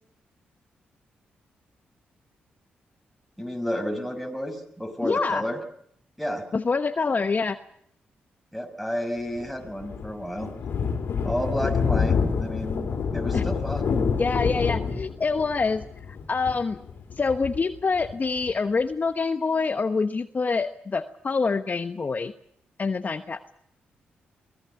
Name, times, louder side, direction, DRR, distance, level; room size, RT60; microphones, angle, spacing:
voice 1, 3.4-5.6 6.2-6.4 8.5-10.5 11.2-14.0, equal, ahead, 5 dB, 5.8 m, -31 dB
voice 2, 5.0-5.4 6.5-7.6 11.6-11.7 13.3-13.4 14.2-16.8 17.2-22.3 22.8-23.4, left 4 dB, 40° left, 10 dB, 1.1 m, -26 dB
Thunder, 9.4-18.5, left 5 dB, 65° left, 3.2 m, -27 dB
23.5 x 17.0 x 8.3 m, 0.67 s
supercardioid pair, 45°, 4 cm